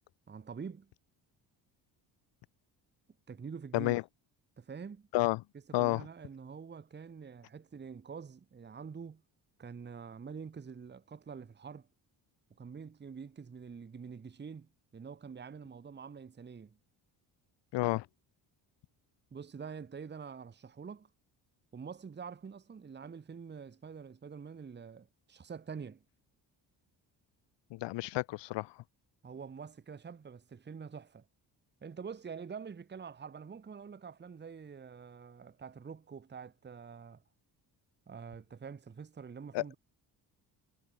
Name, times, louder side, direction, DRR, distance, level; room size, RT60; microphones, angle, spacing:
voice 1, 0.3-0.9 3.3-4.0 4.6-5.1 5.7-9.2 9.6-11.9 12.6-16.8 19.3-21.1 21.7-26.0 29.2-31.3 31.8-37.2 38.1-39.8, right 6 dB, 25° right, 1.1 m, -46 dB
voice 2, 5.7-6.1 17.7-18.1 27.7-28.7 39.5-39.6, left 18 dB, 85° left, 1.0 m, -30 dB
cardioid pair, 90°, 42 cm